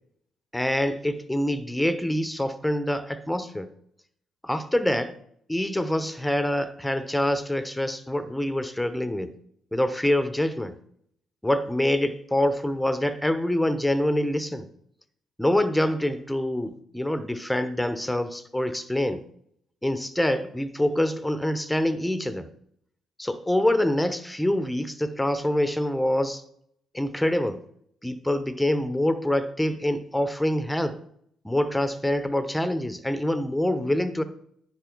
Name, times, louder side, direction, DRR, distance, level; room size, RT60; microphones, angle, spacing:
voice 1, 0.5-3.7 4.4-5.2 5.5-9.4 9.7-10.8 11.4-14.7 15.4-19.2 19.8-22.5 23.2-26.4 26.9-27.6 28.0-31.0 31.4-34.2, left 1 dB, 5° left, 12 dB, 0.9 m, -25 dB
10.5 x 4.9 x 4.6 m, 0.68 s
hypercardioid pair, 45°, 0 cm